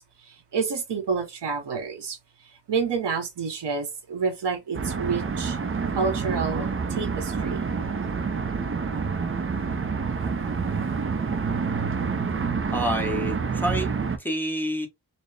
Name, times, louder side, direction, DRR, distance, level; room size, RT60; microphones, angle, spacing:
voice 1, 0.2-2.2 2.7-5.6 5.9-7.6, right 5 dB, 75° right, 1.1 m, -29 dB
sound 1, 4.7-14.2, right 5 dB, 30° right, 0.5 m, -28 dB
voice 2, 12.7-13.9 14.2-14.9, equal, 5° left, 0.8 m, -28 dB
4.1 x 2.1 x 3.2 m
wide cardioid pair, 135°, 41 cm